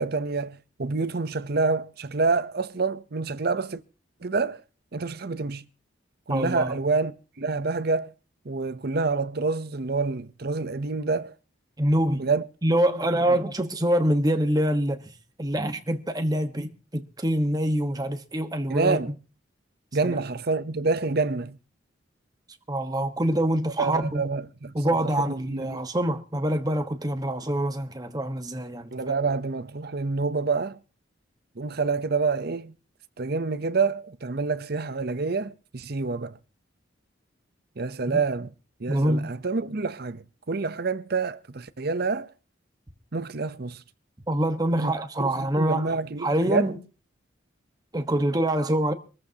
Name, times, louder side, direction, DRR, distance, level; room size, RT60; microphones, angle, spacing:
voice 1, 0.0-3.8 4.2-4.6 4.9-5.7 6.3-7.1 7.4-8.1 8.4-11.3 12.1-12.5 13.3-13.4 18.7-19.1 19.9-21.6 23.8-24.8 25.0-25.8 28.9-30.8 31.6-32.8 33.2-36.4 37.8-38.5 38.8-42.3 43.1-43.8 44.7-44.9 45.2-46.7, right 4 dB, 50° right, 0.8 m, -27 dB
voice 2, 6.3-6.8 11.8-12.2 12.6-15.0 15.4-19.0 20.0-20.1 22.7-24.2 24.7-28.9 38.9-39.3 44.3-45.9 46.2-46.8 47.9-48.9, right 1 dB, 20° right, 1.3 m, -25 dB
25.0 x 14.5 x 2.9 m
head